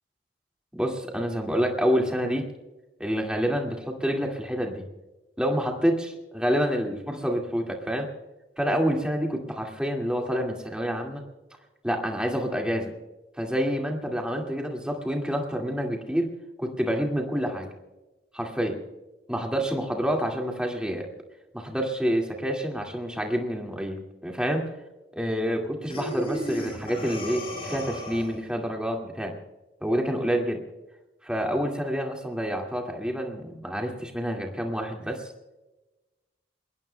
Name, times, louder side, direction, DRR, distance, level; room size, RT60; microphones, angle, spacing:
voice 1, 0.7-2.5 3.0-4.8 5.4-8.1 8.6-11.2 11.8-12.9 13.4-16.3 16.6-17.7 18.3-18.8 19.3-21.1 21.5-24.6 25.1-29.3 29.8-30.6 31.2-35.3, equal, 5° right, 1 dB, 2.1 m, -28 dB
Breathing, 25.9-28.5, equal, 30° left, 7.4 m, -34 dB
28.0 x 21.0 x 2.3 m, 1.1 s
head